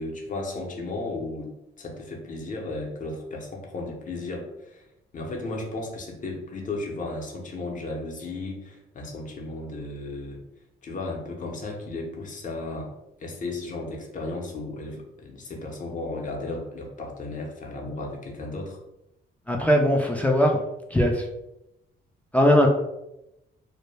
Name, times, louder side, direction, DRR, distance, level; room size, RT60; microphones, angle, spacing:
voice 1, 0.0-1.5 1.8-4.9 5.1-10.4 10.8-12.9 13.2-18.8, left 2 dB, 40° left, 1 dB, 0.7 m, -34 dB
voice 2, 19.5-20.6 20.9-21.2 22.3-22.7, equal, 5° left, 0 dB, 0.3 m, -20 dB
2.1 x 2.0 x 3.2 m, 0.87 s
cardioid pair, 90°, 20 cm